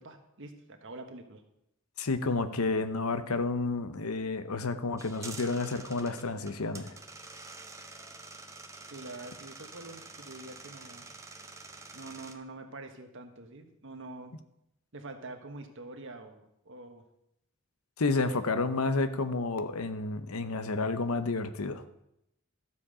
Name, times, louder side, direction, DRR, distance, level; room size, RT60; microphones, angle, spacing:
voice 1, 0.0-1.4 8.8-11.1 11.9-14.3 14.9-17.0, right 2 dB, 60° right, 5 dB, 1.4 m, -45 dB
voice 2, 2.0-7.0 18.0-21.8, left 3 dB, 85° left, 11 dB, 0.9 m, -30 dB
sound 1, 5.0-12.3, right 3 dB, 15° right, 0.8 m, -47 dB
13.0 x 7.3 x 5.0 m, 0.81 s
head